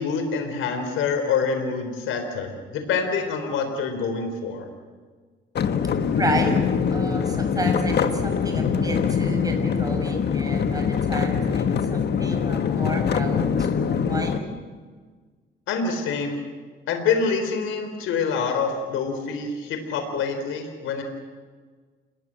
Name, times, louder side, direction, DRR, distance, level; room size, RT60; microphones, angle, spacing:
voice 1, 0.0-4.7 15.7-16.4 16.9-21.0, left 5 dB, 85° left, 6 dB, 4.2 m, -26 dB
sound 1, 5.5-14.4, left 7 dB, 55° left, 1.6 m, -23 dB
voice 2, 6.1-6.5 6.9-14.6, right 2 dB, 20° right, 3 dB, 6.7 m, -31 dB
29.5 x 21.0 x 7.8 m, 1.5 s
cardioid pair, 90°, 20 cm